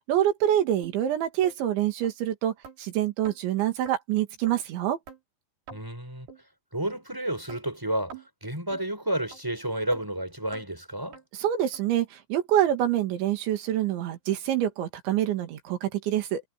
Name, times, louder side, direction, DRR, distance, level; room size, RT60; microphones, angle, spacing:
voice 1, 0.1-2.5 2.8-5.0 11.4-16.4, right 11 dB, 75° right, 4.5 m, -26 dB
sound 1, 0.8-1.0 1.4-1.6 2.0-2.1 2.6-2.8 3.2-3.4 3.9-4.0 4.5-4.6 5.1-5.2 5.7-5.8 6.3-6.4 6.9-7.0 7.5-7.6 8.1-8.3 8.7-8.8 9.3-9.4 9.9-10.0 10.5-10.7 11.1-11.2 11.7-11.8 12.3-12.4 13.0-13.1 13.6-13.7, right 6 dB, 55° right, 7.4 m, -45 dB
voice 2, 5.7-6.3 6.7-11.2, right 1 dB, 5° right, 6.3 m, -31 dB
omnidirectional pair, 5.4 m